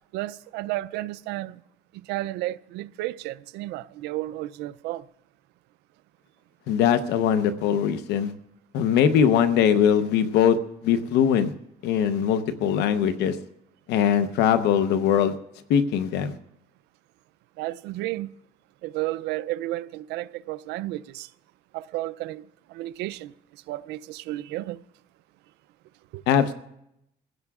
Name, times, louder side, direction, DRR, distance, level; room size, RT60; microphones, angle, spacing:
voice 1, 0.1-1.6 1.9-5.0 17.6-18.3 18.8-21.3 21.7-24.8 26.1-26.2, right 17 dB, 90° right, 0.5 m, -32 dB
voice 2, 6.7-8.3 8.7-10.6 10.8-11.5 11.8-13.4 13.9-15.4 15.7-16.3 26.3-26.5, left 8 dB, 85° left, 0.9 m, -21 dB
26.5 x 16.0 x 2.4 m
cardioid pair, 110°, 17 cm